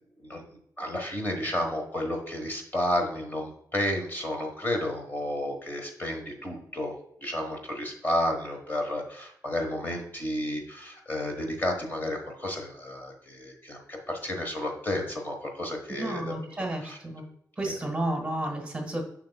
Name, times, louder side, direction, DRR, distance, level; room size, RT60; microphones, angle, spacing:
voice 1, 0.8-6.9 7.2-16.3 16.8-17.0, left 1 dB, 30° left, 3 dB, 1.1 m, -31 dB
voice 2, 15.9-17.2 17.6-19.0, right 1 dB, 15° right, 3 dB, 1.4 m, -32 dB
7.4 x 6.0 x 2.2 m, 0.69 s
wide cardioid pair, 150°, 7 cm